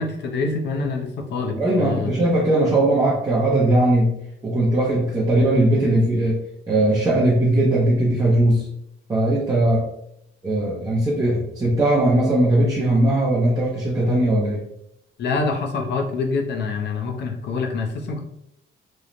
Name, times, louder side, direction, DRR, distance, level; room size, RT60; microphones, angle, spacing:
voice 1, 0.0-2.1 15.2-18.2, left 4 dB, 60° left, 2 dB, 0.5 m, -26 dB
voice 2, 1.5-4.1 4.4-6.4 6.7-8.7 9.1-9.9 10.4-14.6, right 1 dB, 20° right, -6 dB, 0.5 m, -19 dB
3.0 x 2.0 x 2.4 m, 0.76 s
cardioid pair, 150°, 20 cm